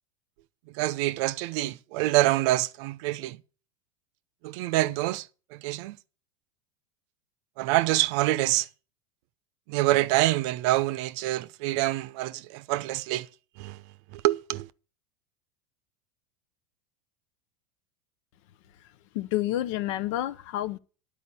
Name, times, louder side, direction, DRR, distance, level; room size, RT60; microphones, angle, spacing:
voice 1, 0.7-3.4 4.4-6.0 7.6-8.7 9.7-13.3 13.6-13.8 14.1-14.7, right 17 dB, 60° right, 0.6 m, -26 dB
voice 2, 19.1-20.8, left 14 dB, 65° left, 0.8 m, -29 dB
11.0 x 4.9 x 8.2 m
hypercardioid pair, 90°, 17 cm